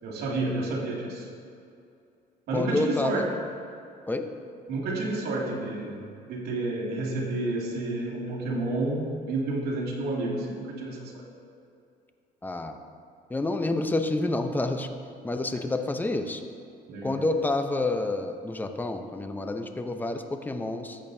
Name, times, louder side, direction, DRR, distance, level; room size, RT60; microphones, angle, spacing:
voice 1, 0.0-1.3 2.5-3.3 4.7-6.0 6.3-11.2 16.9-17.2, right 2 dB, 70° right, -3 dB, 2.4 m, -30 dB
voice 2, 2.5-3.3 4.1-4.3 12.4-12.8 13.3-14.9 15.2-16.4 17.0-21.0, left 2 dB, 10° left, 7 dB, 0.7 m, -28 dB
14.0 x 8.8 x 2.7 m, 2.5 s
cardioid pair, 110°, 17 cm